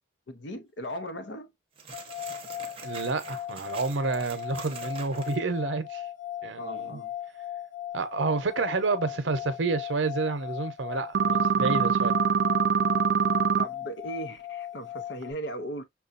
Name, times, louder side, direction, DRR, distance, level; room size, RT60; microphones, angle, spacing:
voice 1, 0.3-1.5 6.6-7.1 13.6-15.8, right 1 dB, 75° left, 0.8 m, -37 dB
sound 1, 1.8-5.4, right 5 dB, 30° right, 0.7 m, -45 dB
sound 2, 1.9-15.3, left 11 dB, 40° left, 0.6 m, -38 dB
voice 2, 2.8-6.1 6.4-7.0 7.9-12.1, right 4 dB, 90° right, 0.7 m, -29 dB
sound 3, 11.1-13.6, right 6 dB, 60° right, 0.3 m, -23 dB
5.9 x 2.3 x 2.5 m
head